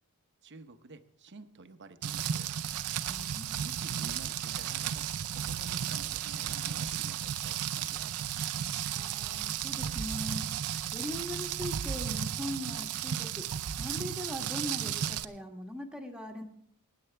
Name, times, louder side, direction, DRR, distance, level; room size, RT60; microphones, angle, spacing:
voice 1, 0.4-2.5 3.6-8.2, right 2 dB, 50° right, 9 dB, 0.9 m, -50 dB
Rain, 2.0-15.2, right 9 dB, 85° right, 0.6 m, -34 dB
voice 2, 3.0-3.8 8.9-13.4 13.8-16.4, left 1 dB, 5° right, 2 dB, 1.4 m, -40 dB
23.5 x 9.7 x 3.4 m, 0.72 s
head